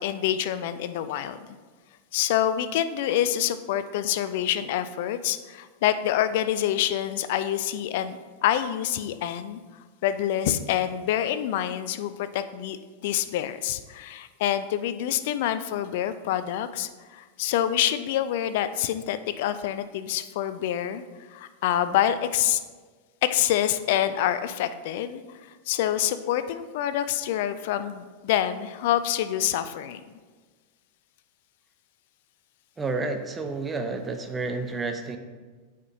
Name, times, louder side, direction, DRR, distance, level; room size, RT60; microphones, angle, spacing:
voice 1, 0.0-1.4 2.1-9.6 10.0-12.8 13.0-21.0 21.3-22.6 23.2-25.4 25.7-30.0, left 11 dB, 50° left, 12 dB, 0.4 m, -26 dB
voice 2, 32.8-35.2, right 3 dB, 15° right, 6 dB, 0.6 m, -30 dB
8.7 x 5.0 x 2.8 m, 1.4 s
figure-of-eight pair, 90°, 0 cm